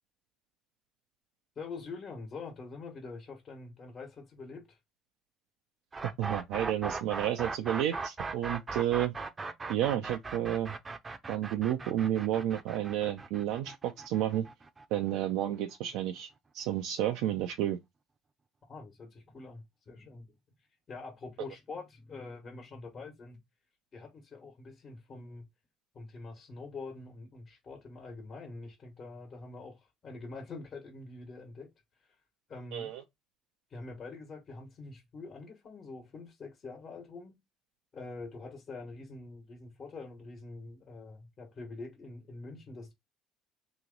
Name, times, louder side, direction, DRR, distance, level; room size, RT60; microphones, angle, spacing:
voice 1, 1.5-4.8 18.7-20.3 20.9-23.4 23.9-25.5 25.9-31.7 32.5-32.9 33.7-37.3 37.9-42.9, left 3 dB, 45° left, 1.3 m, -45 dB
sound 1, 5.9-15.8, right 4 dB, 30° right, 0.7 m, -39 dB
voice 2, 6.0-9.1 9.7-10.7 11.3-14.5 14.9-17.8 32.7-33.0, right 12 dB, 75° right, 0.5 m, -31 dB
3.0 x 2.9 x 3.8 m
hypercardioid pair, 65°, 0 cm